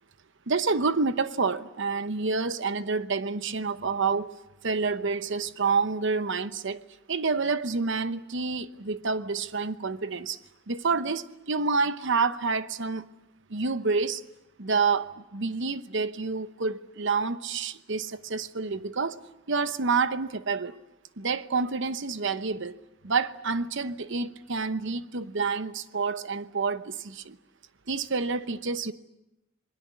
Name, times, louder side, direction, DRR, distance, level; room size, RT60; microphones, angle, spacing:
voice 1, 0.5-4.4 4.6-6.8 7.1-10.4 10.7-13.1 13.5-14.2 14.6-19.2 19.5-20.8 21.2-22.7 23.0-27.4 27.9-28.9, right 4 dB, 60° right, 1.0 m, -28 dB
27.5 x 21.0 x 8.4 m
head